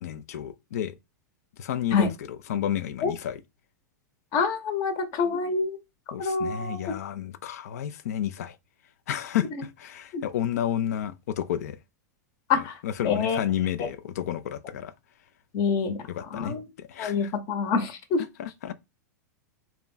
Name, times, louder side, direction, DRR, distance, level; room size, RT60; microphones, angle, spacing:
voice 1, 0.0-1.0 1.6-3.4 6.1-8.6 9.1-11.8 12.5-14.9 16.1-17.3 18.4-18.7, left 10 dB, 60° left, 0.5 m, -31 dB
voice 2, 4.3-5.8 6.2-6.9 10.1-10.2 12.5-12.7 13.0-13.4 13.8-13.9 15.5-16.0 16.3-16.6 17.0-18.2, left 5 dB, 40° left, 1.0 m, -26 dB
3.4 x 3.0 x 3.8 m
figure-of-eight pair, 95°, 10 cm